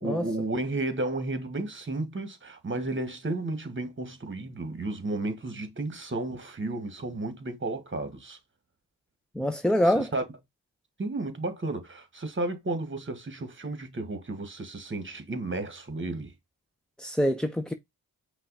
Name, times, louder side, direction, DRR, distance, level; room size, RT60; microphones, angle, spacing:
voice 1, 0.0-8.4 9.8-10.2 11.0-16.3, right 2 dB, 30° right, 1.5 m, -33 dB
voice 2, 9.3-10.1 17.0-17.7, equal, ahead, 0.5 m, -25 dB
5.4 x 2.4 x 4.0 m
cardioid pair, 50°, 40 cm